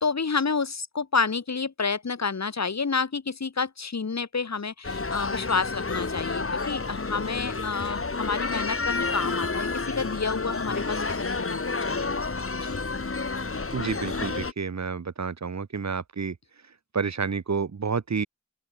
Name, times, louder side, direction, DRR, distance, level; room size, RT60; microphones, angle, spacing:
voice 1, 0.0-12.3 12.7-12.8, left 5 dB, 65° left, 1.0 m, -29 dB
sound 1, 4.8-14.5, left 3 dB, 50° left, 1.2 m, -30 dB
voice 2, 13.7-16.4 16.9-18.3, right 5 dB, 65° right, 0.8 m, -29 dB
open air
wide cardioid pair, 45°, 29 cm